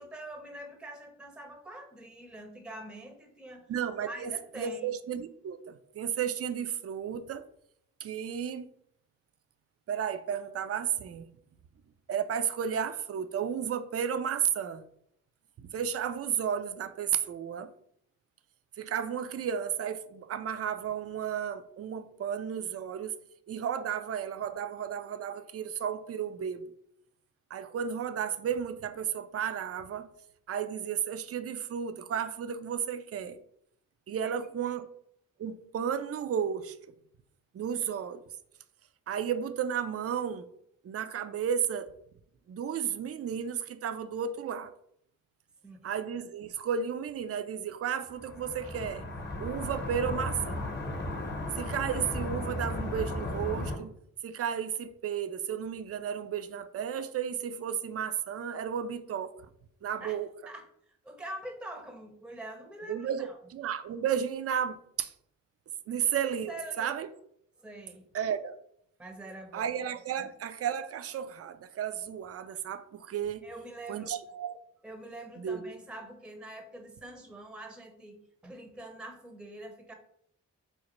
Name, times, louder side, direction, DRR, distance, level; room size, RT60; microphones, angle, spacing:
voice 1, 0.0-3.7 4.1-4.9 34.2-34.8 45.6-45.9 60.0-60.2 60.5-60.7 61.0-63.4 65.9-66.0 66.5-67.0 67.6-68.1 69.0-69.7 70.1-70.3 73.4-74.1 74.8-79.9, right 1 dB, 5° right, 0.6 m, -45 dB
voice 2, 3.7-7.4 8.0-8.7 9.9-11.3 12.1-14.8 15.6-17.7 18.8-23.2 23.5-26.7 27.5-30.1 30.5-33.4 34.1-34.9 35.4-36.8 37.5-38.2 39.1-40.5 40.8-41.9 42.5-44.7 45.8-49.1 49.4-50.6 51.6-53.9 54.2-59.3 59.8-60.3 62.9-65.1 65.9-67.1 68.1-68.6 69.5-73.4 73.9-74.6 75.4-75.6, right 8 dB, 45° right, 0.4 m, -33 dB
sound 1, 48.1-53.8, left 1 dB, 30° left, 0.9 m, -35 dB
5.0 x 2.1 x 3.0 m
cardioid pair, 50°, 34 cm